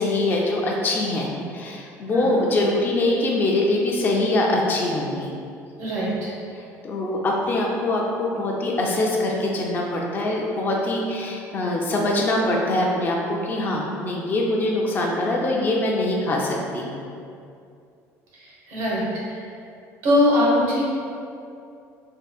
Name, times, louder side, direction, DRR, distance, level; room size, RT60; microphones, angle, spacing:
voice 1, 0.0-5.3 6.6-17.0, left 2 dB, 30° left, -1 dB, 0.3 m, -23 dB
voice 2, 2.1-2.5 5.8-6.3 18.3-19.4 20.0-20.9, left 1 dB, 80° right, -8 dB, 1.2 m, -22 dB
3.5 x 2.1 x 2.3 m, 2.5 s
cardioid pair, 145°, 7 cm